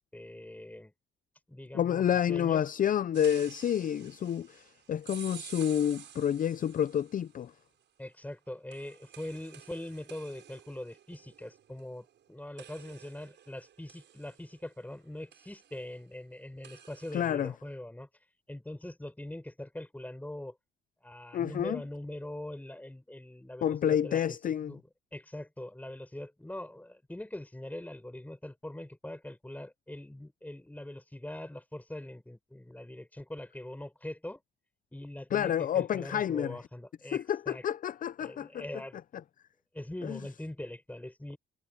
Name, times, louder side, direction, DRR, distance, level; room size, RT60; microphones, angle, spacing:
voice 1, 0.1-0.9 1.5-2.6 8.0-18.1 18.5-20.6 21.0-24.2 24.7-24.8 25.1-34.4 34.9-37.6 38.2-39.0 39.7-41.4, left 1 dB, 10° left, 6.3 m, -42 dB
voice 2, 1.7-7.5 17.1-17.5 21.3-21.8 23.6-24.7 35.3-36.6 37.0-38.6 40.0-40.2, left 9 dB, 45° left, 0.5 m, -29 dB
sound 1, 3.1-7.4 8.7-12.2 12.6-15.0 15.3-15.8 16.6-17.2, right 9 dB, 65° right, 6.4 m, -51 dB
cardioid pair, 90°, 20 cm